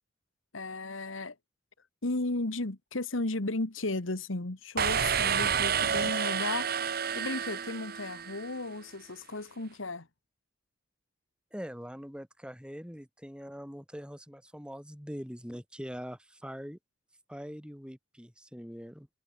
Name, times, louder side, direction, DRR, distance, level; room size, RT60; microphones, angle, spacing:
voice 1, 0.5-1.4 2.0-10.1, left 2 dB, 80° left, 1.8 m, -35 dB
sound 1, 4.8-8.5, right 7 dB, 50° right, 1.1 m, -29 dB
voice 2, 11.5-16.8 17.3-19.1, equal, 5° right, 4.5 m, -43 dB
head